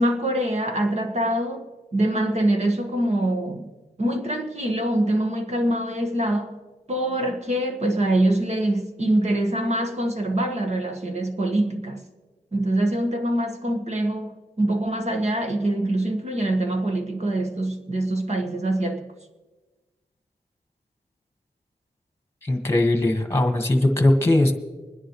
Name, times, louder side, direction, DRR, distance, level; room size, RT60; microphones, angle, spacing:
voice 1, 0.0-1.7 1.9-3.7 4.0-6.5 6.9-12.0 12.5-19.1, right 1 dB, 40° right, 1.7 m, -24 dB
voice 2, 22.4-24.5, left 1 dB, 15° left, 1.8 m, -20 dB
25.5 x 10.0 x 3.3 m
wide cardioid pair, 105°, 17 cm